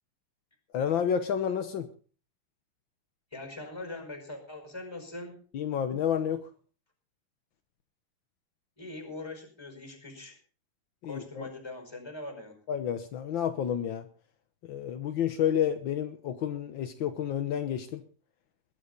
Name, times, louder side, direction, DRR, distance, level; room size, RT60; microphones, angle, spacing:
voice 1, 0.7-1.9 5.5-6.5 11.0-11.5 12.7-14.1 14.6-18.0, left 9 dB, 70° left, 8 dB, 1.1 m, -30 dB
voice 2, 3.3-5.4 8.8-10.4 11.0-12.6, left 2 dB, 10° left, 5 dB, 5.2 m, -42 dB
21.0 x 11.5 x 4.0 m, 0.39 s
omnidirectional pair, 3.5 m